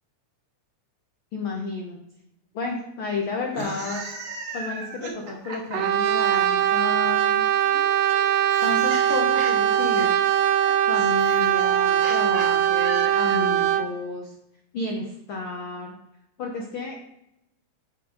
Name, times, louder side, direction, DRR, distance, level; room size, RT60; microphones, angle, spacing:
voice 1, 1.3-2.0 2.5-4.0 4.5-7.4 8.6-10.1 10.9-14.3 14.7-15.9 16.4-17.0, left 3 dB, 75° left, 0 dB, 1.2 m, -31 dB
sound 1, 3.4-6.7 7.7-13.6, right 3 dB, 55° right, 2.0 m, -37 dB
Brass instrument, 5.7-13.9, right 11 dB, 90° right, 2.2 m, -21 dB
11.0 x 3.7 x 4.8 m, 0.83 s
omnidirectional pair, 3.8 m